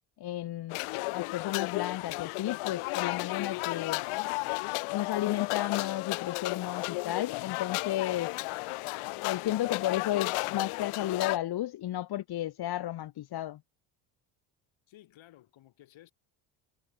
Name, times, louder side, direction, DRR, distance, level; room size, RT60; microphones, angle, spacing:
voice 1, 0.2-0.8 1.1-4.0 4.9-8.4 9.2-13.6, left 13 dB, 50° left, 1.0 m, -33 dB
sound 1, 0.7-11.4, left 26 dB, 85° left, 0.6 m, -34 dB
voice 2, 14.9-16.1, left 14 dB, 65° left, 4.5 m, -56 dB
cardioid pair, 120°, 49 cm